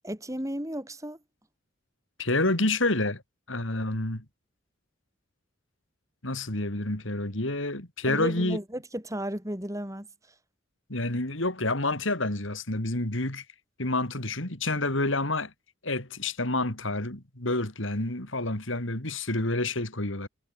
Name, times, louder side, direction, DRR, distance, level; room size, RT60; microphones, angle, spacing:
voice 1, 0.0-1.2 8.1-10.1, equal, 15° right, 4.6 m, -34 dB
voice 2, 2.2-3.2 3.5-4.2 6.2-8.6 10.9-13.4 13.8-15.5 15.8-20.3, left 2 dB, 70° left, 4.0 m, -28 dB
head